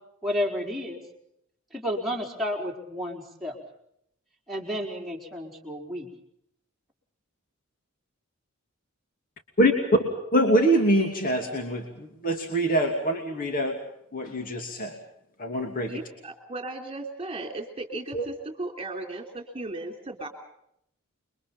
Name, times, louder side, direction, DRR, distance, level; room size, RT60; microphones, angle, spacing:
voice 1, 0.2-1.0 1.7-3.6 4.5-6.1, equal, ahead, -2 dB, 4.6 m, -31 dB
voice 2, 10.3-13.8 14.1-15.0 15.4-16.0 18.1-18.3, right 1 dB, 40° left, 3 dB, 2.8 m, -24 dB
voice 3, 15.9-20.3, right 2 dB, 25° right, 4 dB, 3.3 m, -36 dB
29.0 x 23.5 x 5.6 m, 0.75 s
head